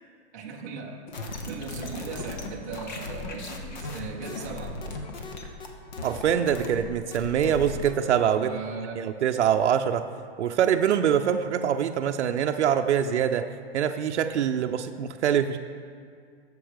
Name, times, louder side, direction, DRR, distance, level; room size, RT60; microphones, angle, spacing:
voice 1, 0.3-1.0 1.4-4.8 8.4-9.0, right 5 dB, 15° right, -2 dB, 0.6 m, -38 dB
sound 1, 1.1-7.9, left 3 dB, 40° left, 1.0 m, -37 dB
voice 2, 6.0-8.5 9.0-10.0 10.4-13.5 13.7-15.6, right 9 dB, 90° right, 6 dB, 0.6 m, -24 dB
8.0 x 7.0 x 6.5 m, 2.2 s
hypercardioid pair, 175°, 33 cm